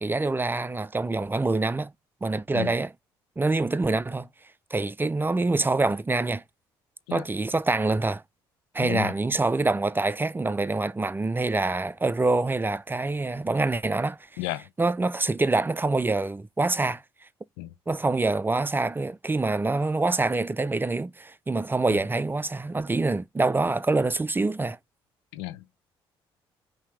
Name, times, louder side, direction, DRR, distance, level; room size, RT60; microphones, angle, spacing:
voice 1, 0.0-1.9 2.2-2.9 3.4-4.3 4.7-6.4 7.1-8.2 8.7-14.2 14.8-17.0 17.9-24.8, right 3 dB, 15° right, 0.4 m, -25 dB
voice 2, 8.8-9.1 14.4-14.7 17.6-17.7 21.9-22.0 25.3-25.6, left 17 dB, 75° left, 0.6 m, -33 dB
5.7 x 2.8 x 3.2 m
hypercardioid pair, 50°, 12 cm